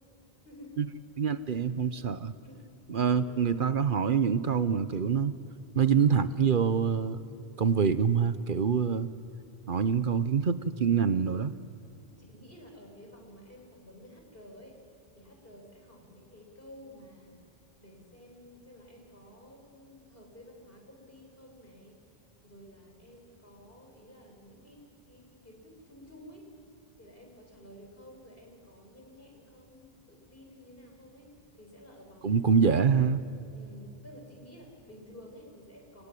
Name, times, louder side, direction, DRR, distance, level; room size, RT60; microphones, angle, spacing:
voice 1, 0.4-0.9 2.4-3.6 12.2-14.8 15.1-17.4 17.8-22.0 22.4-24.8 25.1-26.5 27.0-32.8 33.5-36.1, equal, 65° left, 1 dB, 5.9 m, -52 dB
voice 2, 1.2-2.3 2.9-5.3 5.7-7.2 7.6-9.1 9.7-11.5 32.2-33.2, right 6 dB, 60° right, 12 dB, 1.0 m, -25 dB
26.0 x 23.0 x 9.9 m, 2.6 s
omnidirectional pair, 1.0 m